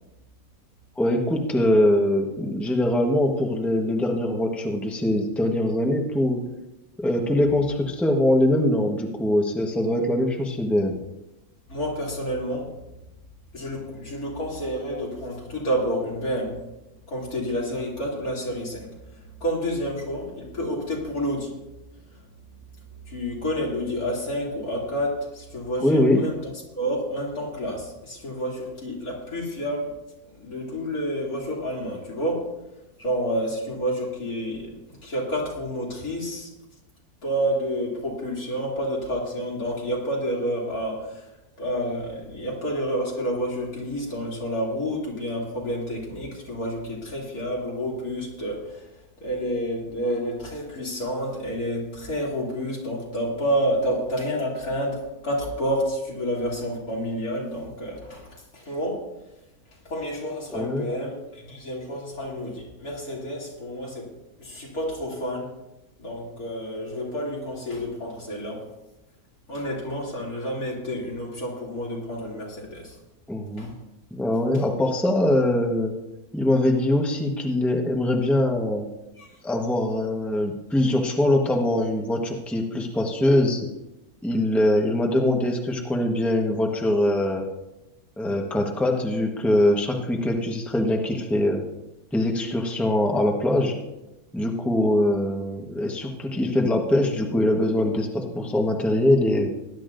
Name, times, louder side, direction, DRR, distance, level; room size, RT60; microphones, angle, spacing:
voice 1, 1.0-6.4 7.0-11.0 25.8-26.2 60.5-60.9 73.3-73.7 74.1-75.9 76.3-78.8 79.4-83.7 84.2-87.5 88.2-91.6 92.1-93.7 94.3-99.5, left 1 dB, ahead, 1 dB, 1.1 m, -22 dB
voice 2, 11.7-12.7 13.5-16.6 17.1-18.9 19.4-21.6 23.1-29.9 30.3-32.5 33.0-36.5 37.2-41.3 41.6-48.9 49.2-59.1 59.9-64.1 64.4-65.5 66.0-68.7 69.5-73.0 73.6-73.7 79.2-79.3, equal, 75° left, -3 dB, 3.3 m, -29 dB
19.5 x 11.0 x 2.6 m, 0.96 s
omnidirectional pair, 1.6 m